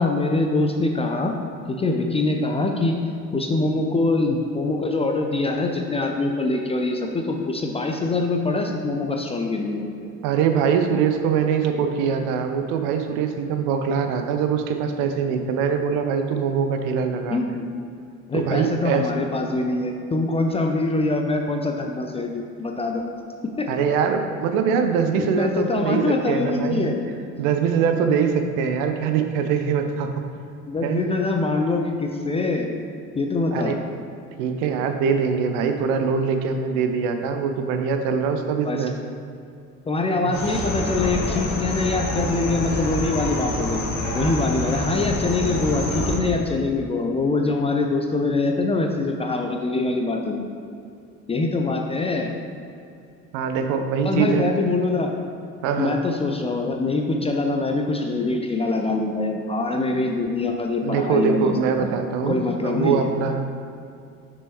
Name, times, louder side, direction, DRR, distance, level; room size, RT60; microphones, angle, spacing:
voice 1, 0.0-1.3 1.7-3.0 3.3-9.9 17.3-17.7 18.3-23.0 23.6-23.7 25.2-26.9 30.7-32.7 33.1-33.8 38.6-38.9 39.9-43.8 44.1-50.5 51.3-52.3 54.0-55.1 55.8-61.9 62.3-63.1, left 3 dB, 15° left, 3 dB, 0.4 m, -24 dB
voice 2, 10.2-17.4 18.3-19.1 23.7-27.0 27.4-30.2 30.8-31.0 33.5-33.8 34.4-38.9 40.2-40.4 53.3-54.5 55.6-56.0 60.8-63.5, right 6 dB, 55° right, 6 dB, 0.6 m, -23 dB
sound 1, 40.3-46.2, left 1 dB, 40° left, 1.4 m, -27 dB
6.2 x 6.1 x 3.0 m, 2.5 s
figure-of-eight pair, 55°, 40 cm